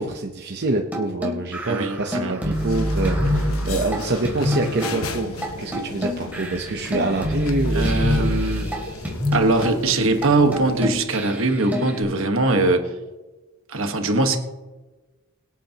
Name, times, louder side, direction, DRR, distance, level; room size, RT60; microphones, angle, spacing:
voice 1, 0.0-8.0 8.4-8.7, right 2 dB, 50° right, 1 dB, 0.8 m, -26 dB
sound 1, 0.9-5.0 5.4-5.5 5.7-8.8 9.0-9.8 10.2-10.3 10.5-12.0, equal, 10° right, 2.8 m, -26 dB
voice 2, 1.7-2.3 7.7-8.7 9.3-12.9 13.7-14.4, right 2 dB, 70° right, 5 dB, 1.4 m, -21 dB
sound 2, 2.5-11.0, left 3 dB, 85° left, 1.2 m, -36 dB
24.0 x 8.4 x 2.9 m, 1.2 s
head